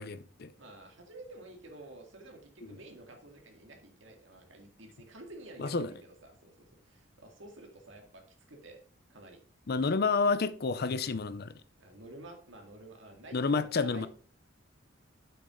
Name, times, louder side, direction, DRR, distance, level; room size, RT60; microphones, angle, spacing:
voice 1, 0.0-0.5 2.6-2.7 5.6-5.9 9.7-11.5 13.3-14.1, left 4 dB, 50° left, 0.6 m, -29 dB
voice 2, 0.6-8.2 8.5-8.8 9.1-9.4 11.8-14.1, right 2 dB, 65° right, 2.0 m, -51 dB
7.9 x 6.3 x 3.7 m
head